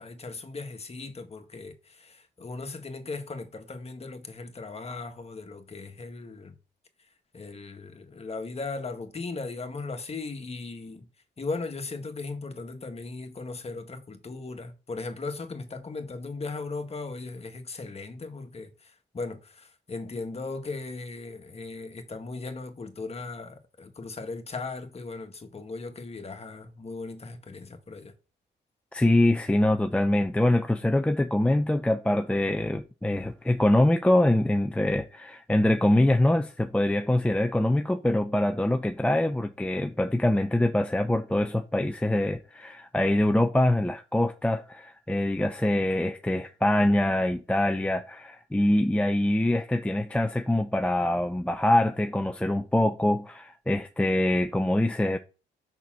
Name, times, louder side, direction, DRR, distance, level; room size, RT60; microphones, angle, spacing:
voice 1, 0.0-6.5 7.3-11.1 11.4-18.7 19.1-28.1, left 3 dB, 30° left, 1.7 m, -37 dB
voice 2, 28.9-55.2, left 1 dB, 5° left, 0.6 m, -24 dB
6.8 x 6.0 x 6.3 m
cardioid pair, 90°, 20 cm